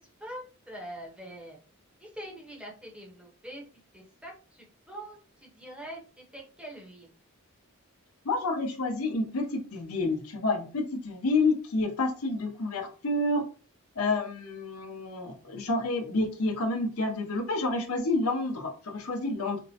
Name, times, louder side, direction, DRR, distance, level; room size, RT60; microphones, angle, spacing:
voice 1, 0.2-1.6 2.0-3.6 3.9-7.1, right 1 dB, 5° right, -2 dB, 0.8 m, -44 dB
voice 2, 8.2-13.4 14.0-19.6, left 2 dB, 85° left, 4 dB, 0.7 m, -29 dB
4.2 x 2.0 x 2.8 m, 0.37 s
head